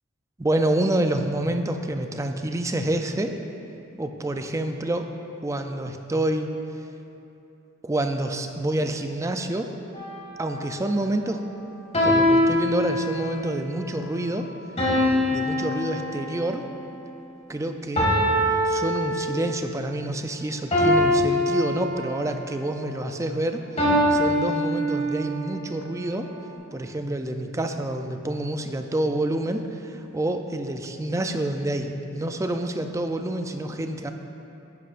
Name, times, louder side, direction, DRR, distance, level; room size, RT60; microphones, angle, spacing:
voice 1, 0.4-3.3 4.0-5.1 5.4-6.5 7.8-9.7 10.4-11.4 12.0-14.5 15.3-16.6 17.5-18.1 18.6-23.8 24.1-26.3 26.7-34.1, right 1 dB, 15° right, 6 dB, 0.4 m, -27 dB
sound 1, 9.9-10.4 11.9-13.4 14.8-16.6 18.0-19.6 20.7-22.3 23.8-25.4, left 1 dB, 35° left, 2.0 m, -23 dB
11.0 x 10.5 x 2.5 m, 2.8 s
head